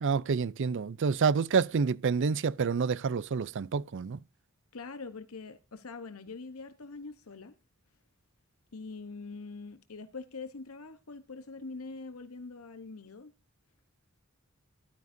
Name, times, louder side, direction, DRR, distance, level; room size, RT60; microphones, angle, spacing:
voice 1, 0.0-4.2, right 5 dB, 60° right, 0.5 m, -28 dB
voice 2, 4.7-7.6 8.7-13.3, left 4 dB, 85° left, 1.0 m, -43 dB
14.0 x 12.0 x 2.7 m
head